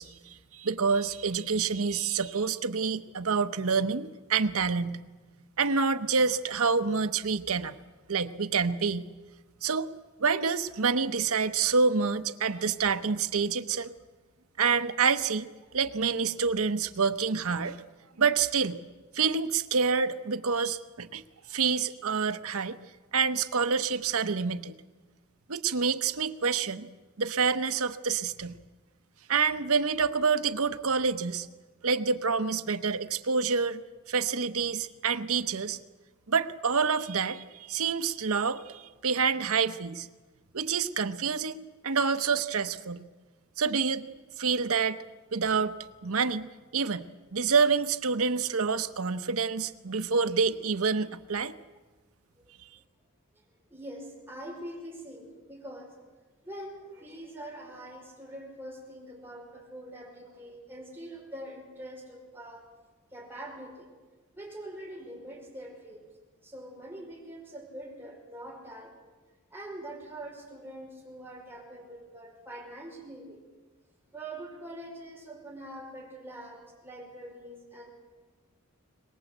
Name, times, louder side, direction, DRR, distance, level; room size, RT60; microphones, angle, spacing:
voice 1, 0.0-5.0 5.6-7.7 8.1-9.0 9.6-9.9 10.2-13.9 14.6-15.5 15.7-17.8 18.2-18.8 19.1-21.2 21.5-22.8 23.1-24.7 25.5-26.9 27.2-28.5 29.3-31.5 31.8-33.8 34.1-35.8 36.3-40.1 40.5-43.0 43.6-44.1 44.4-45.0 45.3-45.7 46.0-47.1 47.3-51.5, right 5 dB, 75° right, 10 dB, 0.9 m, -27 dB
voice 2, 53.7-55.9 56.4-62.7 63.1-63.9 64.3-66.1 66.4-69.0 69.5-73.4 74.1-77.9, right 1 dB, 10° right, -1 dB, 5.0 m, -44 dB
22.5 x 20.0 x 8.0 m, 1.3 s
head